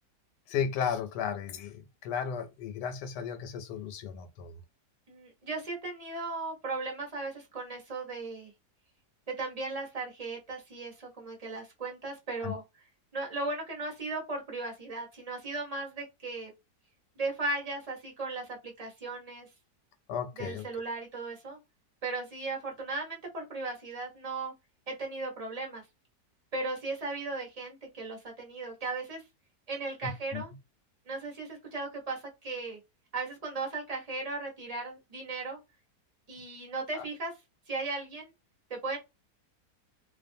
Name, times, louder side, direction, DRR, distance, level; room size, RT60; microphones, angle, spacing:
voice 1, 0.5-4.5 12.4-12.5 20.1-20.7 30.0-30.4 36.9-37.1, left 7 dB, 85° left, 1.2 m, -34 dB
voice 2, 5.1-8.5 9.3-12.6 13.1-16.5 17.2-19.5 20.4-21.6 22.0-24.5 24.9-25.8 26.5-29.2 29.7-30.5 31.1-32.8 33.1-35.6 36.3-37.3 37.7-38.3 38.7-39.0, right 3 dB, 35° right, 0.6 m, -36 dB
2.5 x 2.3 x 2.5 m
omnidirectional pair, 1.7 m